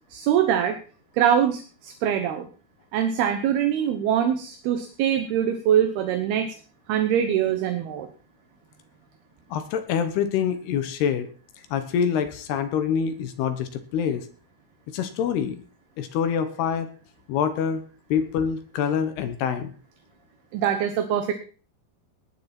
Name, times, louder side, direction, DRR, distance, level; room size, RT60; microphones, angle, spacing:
voice 1, 0.1-0.8 1.2-2.5 2.9-6.5 6.9-8.1 20.5-21.3, right 9 dB, 75° right, 7 dB, 2.9 m, -23 dB
voice 2, 9.5-11.3 11.7-14.3 14.9-15.6 16.0-16.9 17.3-17.8 18.1-19.7, left 7 dB, 75° left, 9 dB, 3.0 m, -26 dB
19.0 x 10.5 x 4.3 m, 0.39 s
omnidirectional pair, 4.9 m